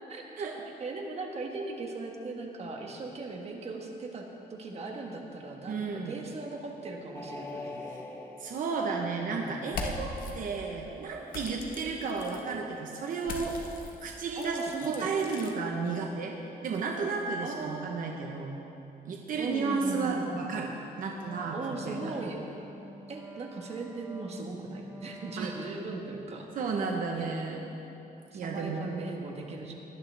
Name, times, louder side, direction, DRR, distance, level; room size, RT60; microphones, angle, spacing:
voice 1, 0.8-7.7 9.0-9.6 14.4-15.1 17.4-17.9 19.4-20.4 21.5-22.4 23.1-26.6 27.1-27.3 28.3-29.7, right 3 dB, 40° right, 1 dB, 1.4 m, -38 dB
voice 2, 5.7-6.2 7.9-8.0 8.4-16.4 16.6-18.6 19.1-20.7 21.0-21.6 21.8-22.2 25.4-25.5 26.5-27.6 28.3-28.9, right 4 dB, 55° right, 0 dB, 1.0 m, -33 dB
sound 1, 7.1-9.8 11.9-12.6, left 2 dB, 15° left, 1.1 m, -44 dB
sound 2, 9.6-10.3 11.3-12.4 13.2-15.5, left 3 dB, 60° left, 1.3 m, -40 dB
Wind instrument woodwind instrument, 21.2-26.3, right 1 dB, 10° right, 0.5 m, -47 dB
18.0 x 11.0 x 3.4 m, 2.9 s
cardioid pair, 140°, 16 cm